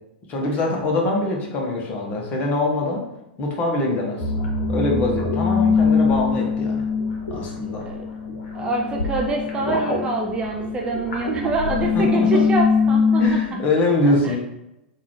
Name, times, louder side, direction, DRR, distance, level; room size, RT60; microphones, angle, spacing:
voice 1, 0.3-3.1 3.4-4.3 4.7-6.8 7.3-7.9 11.9-12.4 13.2-14.4, left 2 dB, 30° left, -1 dB, 0.8 m, -23 dB
sound 1, 4.2-13.3, left 5 dB, 60° left, 0.9 m, -22 dB
voice 2, 8.5-13.4 14.0-14.4, right 2 dB, 20° right, 0 dB, 0.4 m, -26 dB
3.7 x 2.3 x 3.1 m, 0.89 s
figure-of-eight pair, 95°, 5 cm